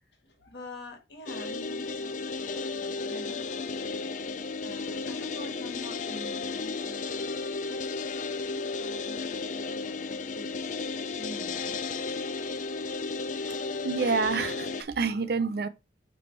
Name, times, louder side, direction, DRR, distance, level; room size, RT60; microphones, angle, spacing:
voice 1, 0.2-4.1 4.6-7.9 8.2-10.6 11.1-11.8, left 1 dB, 65° left, 1.6 m, -46 dB
sound 1, 1.3-14.8, left 4 dB, 40° left, 0.4 m, -34 dB
voice 2, 13.5-15.7, right 4 dB, 55° right, 0.5 m, -28 dB
9.2 x 3.3 x 3.2 m
head